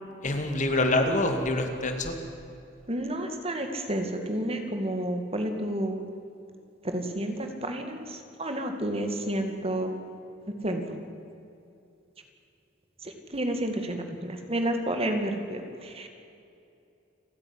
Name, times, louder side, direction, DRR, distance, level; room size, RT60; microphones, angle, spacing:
voice 1, 0.2-2.1, left 2 dB, 40° left, 6 dB, 2.2 m, -26 dB
voice 2, 2.9-6.0 6.8-9.9 10.6-11.1 13.0-16.1, right 1 dB, 30° right, 5 dB, 2.3 m, -30 dB
29.5 x 10.5 x 9.9 m, 2.6 s
head